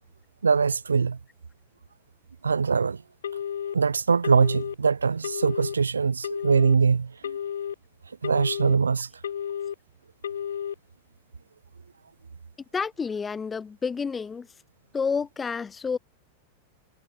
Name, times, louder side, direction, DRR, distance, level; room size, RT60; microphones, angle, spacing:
voice 1, 0.4-1.2 2.4-3.0 3.7-7.4 8.2-9.1, right 5 dB, 75° right, 2.7 m, -22 dB
Telephone, 3.2-3.7 4.2-4.7 5.2-5.7 6.2-6.7 7.2-7.7 8.2-8.7 9.2-9.7 10.2-10.7, left 9 dB, 65° left, 5.8 m, -32 dB
voice 2, 12.7-14.5 14.9-16.0, left 5 dB, 15° left, 5.0 m, -29 dB
figure-of-eight pair, 90°, 0 cm